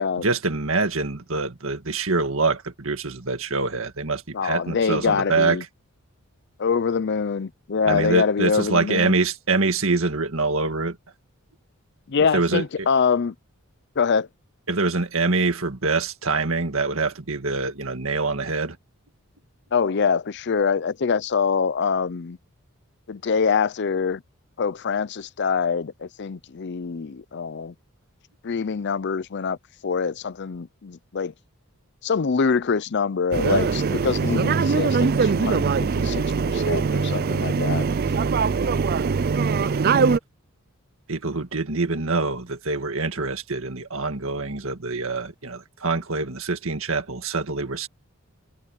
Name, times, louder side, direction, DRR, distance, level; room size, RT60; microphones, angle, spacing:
voice 1, 0.2-5.6 7.8-11.0 12.3-12.9 14.7-18.8 37.3-37.4 41.1-47.9, right 3 dB, 65° right, 2.0 m, -25 dB
voice 2, 4.3-5.6 6.6-9.1 12.1-13.3 14.0-14.3 19.7-22.4 23.1-24.2 24.6-27.7 28.4-29.6 29.8-31.3 32.0-37.9, left 5 dB, 50° left, 0.5 m, -24 dB
sound 1, 33.3-40.2, right 5 dB, 45° right, 0.4 m, -22 dB
head